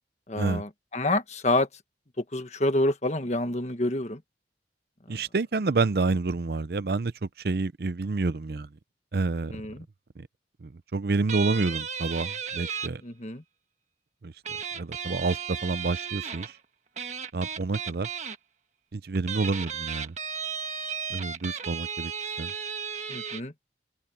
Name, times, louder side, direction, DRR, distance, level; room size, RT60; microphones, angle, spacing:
voice 1, 0.3-1.7 2.3-4.2 9.5-9.8 13.0-13.4 23.1-23.5, left 2 dB, 40° left, 1.5 m, -27 dB
voice 2, 5.1-8.7 9.1-9.5 10.2-10.3 10.6-13.0 14.2-14.3 14.7-16.6 17.3-18.1 18.9-20.1 21.1-22.1 22.4-22.5, right 3 dB, 60° right, 0.6 m, -28 dB
sound 1, 11.3-12.9 14.4-16.5 17.0-18.4 19.1-23.4, right 7 dB, 40° right, 1.5 m, -34 dB
open air
head